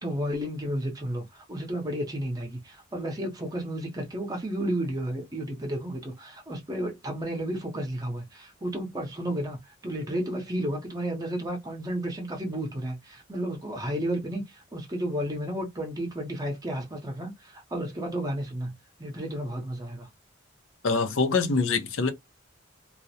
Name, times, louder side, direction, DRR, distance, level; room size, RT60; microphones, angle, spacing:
voice 1, 0.0-18.7 19.0-20.1, right 1 dB, 20° right, 0.6 m, -32 dB
voice 2, 20.8-22.1, left 4 dB, 85° left, 0.6 m, -24 dB
2.3 x 2.0 x 2.7 m
head